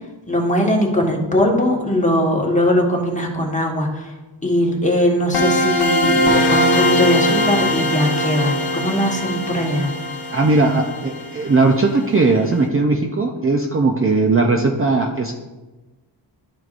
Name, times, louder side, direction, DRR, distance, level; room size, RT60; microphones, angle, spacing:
voice 1, 0.3-4.1 4.4-9.9, left 1 dB, 15° left, -1 dB, 1.3 m, -20 dB
sound 1, 5.3-12.0, equal, 55° left, 1.1 m, -20 dB
voice 2, 10.3-15.4, right 3 dB, 30° right, 2 dB, 0.5 m, -18 dB
12.0 x 4.6 x 2.5 m, 1.2 s
wide cardioid pair, 120°, 46 cm